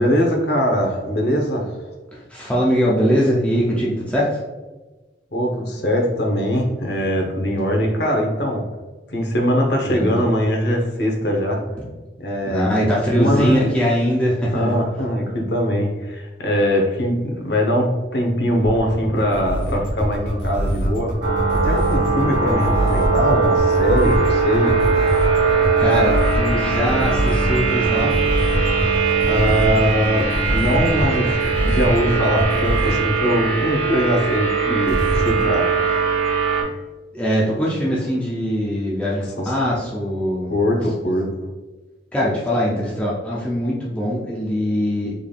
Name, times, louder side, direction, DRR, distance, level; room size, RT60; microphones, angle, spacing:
voice 1, 0.0-1.7 5.3-8.6 9.1-11.6 12.2-13.6 14.5-21.1 21.6-25.0 25.3-25.4 29.2-36.0 39.4-39.5 40.5-41.3, equal, 65° left, 1 dB, 0.8 m, -21 dB
voice 2, 2.1-4.4 7.5-7.7 9.8-10.2 11.8-11.9 12.5-14.8 25.8-28.1 37.1-40.5 41.0-41.1 42.1-45.1, equal, 5° left, -6 dB, 0.5 m, -21 dB
sound 1, 18.6-33.0 34.8-35.4, equal, 85° left, 1.5 m, -23 dB
sound 2, 21.2-36.6, right 5 dB, 80° right, 1.2 m, -21 dB
3.8 x 3.3 x 2.3 m, 1.2 s
head